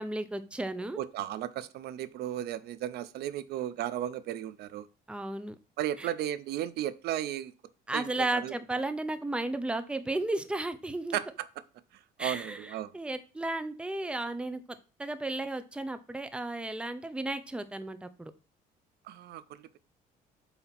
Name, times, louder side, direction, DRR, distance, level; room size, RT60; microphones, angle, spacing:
voice 1, 0.0-1.0 5.1-5.6 6.0-6.1 7.9-11.2 12.2-14.6 15.0-18.3, right 2 dB, 5° right, 0.7 m, -34 dB
voice 2, 1.0-4.9 5.8-7.5 7.9-8.5 11.1-11.3 12.2-12.9 19.1-19.7, right 12 dB, 70° right, 0.6 m, -35 dB
8.0 x 2.9 x 5.8 m
cardioid pair, 110°, 17 cm